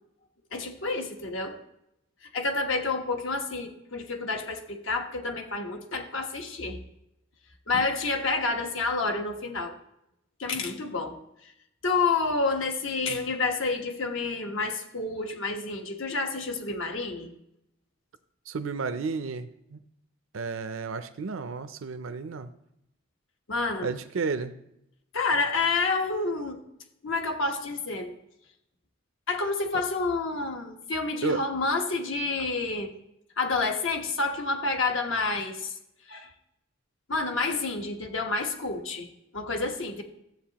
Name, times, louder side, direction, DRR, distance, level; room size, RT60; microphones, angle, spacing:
voice 1, 0.5-1.6 2.3-6.8 7.7-9.7 10.4-11.1 11.8-17.3 23.5-23.9 25.1-26.6 27.0-28.1 29.3-32.9 33.4-35.7 36.1-36.3 37.1-39.1 39.3-40.0, left 3 dB, 75° left, 4 dB, 1.2 m, -29 dB
voice 2, 18.5-19.8 20.3-22.5 23.8-24.5 31.2-31.5, right 4 dB, 85° right, 10 dB, 0.5 m, -32 dB
13.5 x 7.9 x 2.9 m, 0.80 s
head